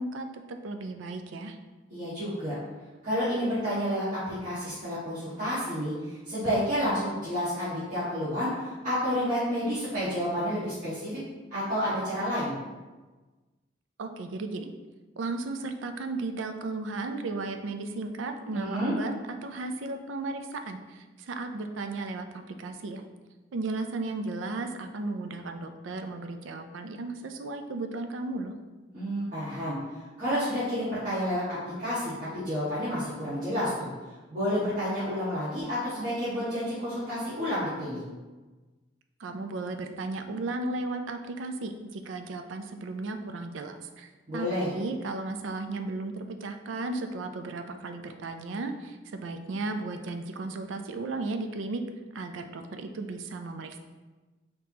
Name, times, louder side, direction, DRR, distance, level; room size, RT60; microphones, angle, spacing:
voice 1, 0.0-1.6 14.0-14.7 15.2-23.0 23.5-28.5 39.2-51.8 52.1-53.8, right 3 dB, 85° right, 7 dB, 0.4 m, -35 dB
voice 2, 1.9-2.5 3.0-11.2 11.5-12.5 18.5-18.9 28.9-29.8 30.2-33.9 34.3-38.0 44.3-44.7, equal, 40° right, -14 dB, 1.5 m, -30 dB
5.2 x 2.9 x 2.8 m, 1.2 s
head